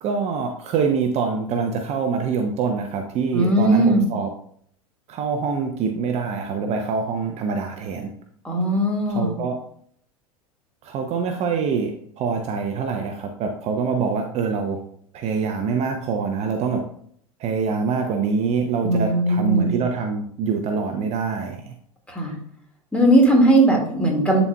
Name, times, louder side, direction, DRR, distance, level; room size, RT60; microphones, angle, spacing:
voice 1, 0.0-4.3 5.1-8.1 9.1-9.6 10.8-14.8 15.1-16.9 17.4-21.7, right 5 dB, 35° right, 4 dB, 0.7 m, -25 dB
voice 2, 3.3-4.1 8.4-9.4 18.8-19.8 22.1-22.3 22.9-24.4, right 1 dB, 5° left, -1 dB, 1.9 m, -18 dB
10.5 x 4.1 x 2.3 m, 0.64 s
figure-of-eight pair, 85°, 19 cm